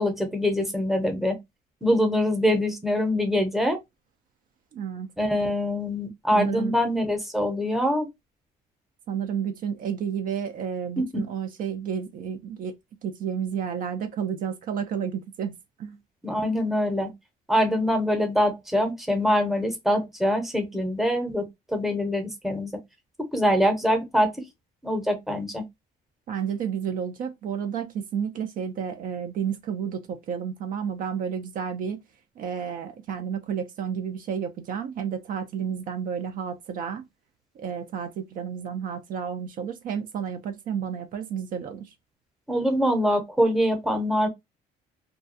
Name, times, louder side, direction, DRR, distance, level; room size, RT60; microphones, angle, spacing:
voice 1, 0.0-1.4 1.8-3.8 5.2-8.1 11.0-11.2 16.2-17.1 17.5-22.7 23.3-24.3 24.8-25.6 42.5-44.3, equal, ahead, 0.7 m, -24 dB
voice 2, 4.7-5.1 6.3-6.7 9.1-12.7 13.0-16.0 26.3-32.0 32.4-37.0 37.6-41.9, right 7 dB, 55° right, 0.4 m, -31 dB
2.4 x 2.2 x 2.6 m
cardioid pair, 110°, 17 cm